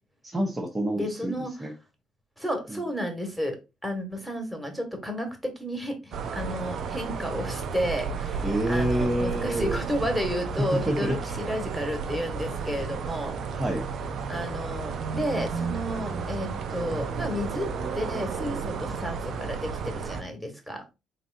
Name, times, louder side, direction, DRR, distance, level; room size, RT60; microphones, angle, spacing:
voice 1, 0.2-1.7 8.4-9.8 10.6-11.4 13.5-13.8, right 1 dB, 25° right, 1.0 m, -28 dB
voice 2, 0.9-1.7 2.4-13.4 14.3-17.7 17.9-20.9, equal, ahead, 1.8 m, -32 dB
sound 1, 6.1-20.2, right 5 dB, 60° right, 0.6 m, -32 dB
4.1 x 3.7 x 2.6 m
hypercardioid pair, 50°, 0 cm